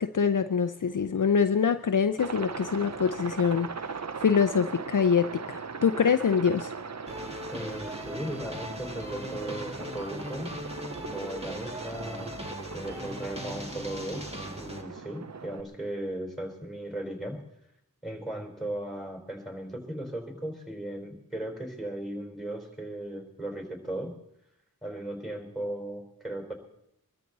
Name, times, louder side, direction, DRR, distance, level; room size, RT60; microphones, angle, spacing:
voice 1, 0.0-6.7, left 6 dB, 60° left, 0.6 m, -25 dB
Aircraft, 2.2-15.6, right 5 dB, 45° right, 0.8 m, -40 dB
sound 1, 7.1-14.8, equal, 15° right, 2.1 m, -39 dB
voice 2, 7.5-10.5 11.0-12.3 12.7-14.3 14.6-17.4 18.0-24.1 24.8-26.5, right 1 dB, ahead, 4.4 m, -37 dB
23.5 x 13.5 x 4.1 m
wide cardioid pair, 45°, 36 cm